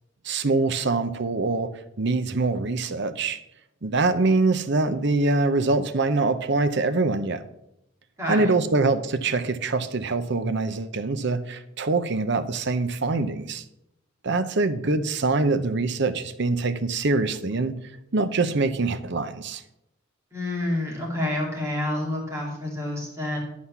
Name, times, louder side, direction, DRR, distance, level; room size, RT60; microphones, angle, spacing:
voice 1, 0.2-1.7 2.0-3.4 3.8-7.4 8.3-13.6 14.2-17.7 18.1-19.6, right 3 dB, 60° right, 11 dB, 0.8 m, -24 dB
voice 2, 8.2-8.5 20.3-23.4, left 1 dB, 15° right, -3 dB, 2.4 m, -28 dB
11.0 x 4.2 x 7.2 m, 0.82 s
head